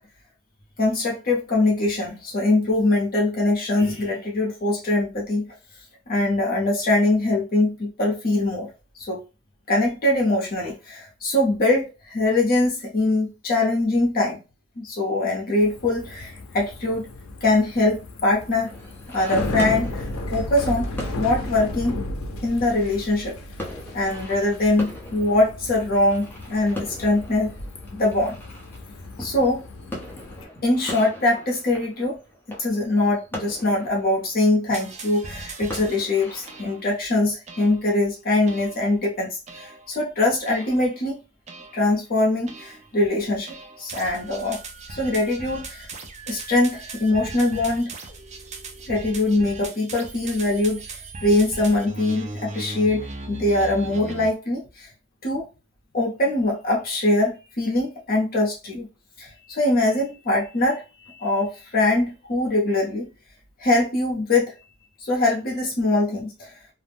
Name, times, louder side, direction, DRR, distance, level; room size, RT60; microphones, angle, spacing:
voice 1, 0.8-5.5 6.1-8.7 8.9-9.2 9.7-14.4 14.8-17.1 17.4-18.7 19.1-22.0 22.4-23.3 23.9-27.5 27.9-28.4 29.2-29.6 30.6-32.2 32.6-41.2 41.7-44.6 44.9-45.9 46.3-47.9 48.9-54.9 55.2-55.5 55.9-58.9 59.2-63.1 63.6-64.5 65.0-66.5, left 2 dB, 45° left, -2 dB, 0.7 m, -22 dB
Bicycle, 15.6-30.4, left 1 dB, 85° left, 0.5 m, -34 dB
sound 1, 18.6-36.8, left 1 dB, 10° left, 0.6 m, -40 dB
sound 2, 34.7-36.0 36.5-37.0 37.5-37.9 38.5-38.9 39.5-39.9 40.5-41.0 41.5-41.9 42.5-42.9 43.5-54.3, right 3 dB, 35° right, 0.4 m, -38 dB
2.5 x 2.0 x 3.4 m, 0.31 s
head